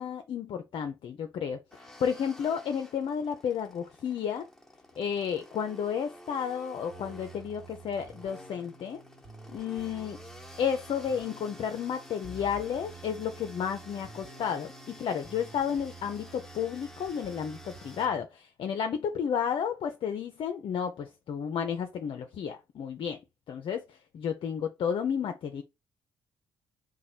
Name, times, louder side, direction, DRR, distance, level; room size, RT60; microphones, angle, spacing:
voice 1, 0.0-1.6 2.0-4.5 5.0-9.0 9.5-10.2 10.6-23.2 23.5-25.6, left 7 dB, 55° left, 0.5 m, -32 dB
sound 1, 1.7-18.1, left 1 dB, 5° left, 1.0 m, -51 dB
sound 2, 6.9-18.3, right 4 dB, 35° right, 1.4 m, -50 dB
3.0 x 2.2 x 4.1 m
hypercardioid pair, 50°, 11 cm